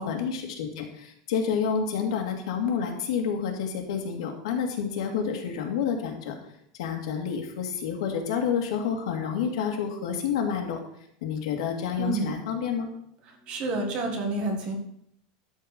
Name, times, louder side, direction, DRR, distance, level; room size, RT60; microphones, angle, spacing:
voice 1, 0.0-6.3 6.8-10.8 11.2-12.9, left 7 dB, 75° left, 3 dB, 2.3 m, -29 dB
voice 2, 12.0-12.3 13.2-14.7, right 2 dB, 30° right, 3 dB, 1.8 m, -29 dB
12.5 x 4.7 x 6.7 m, 0.73 s
supercardioid pair, 175°, 3 cm